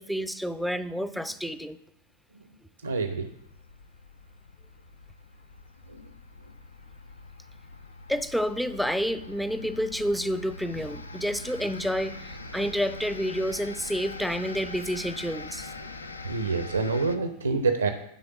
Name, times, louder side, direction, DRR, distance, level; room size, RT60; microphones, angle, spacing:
voice 1, 0.0-1.8 8.1-15.7, equal, ahead, 13 dB, 0.4 m, -29 dB
voice 2, 2.8-3.3 5.9-6.1 15.8-16.0 16.2-17.9, right 4 dB, 80° right, 7 dB, 0.6 m, -27 dB
sound 1, 3.1-17.2, left 3 dB, 75° left, 0.5 m, -43 dB
10.0 x 3.5 x 6.8 m, 0.75 s
figure-of-eight pair, 90°, 0 cm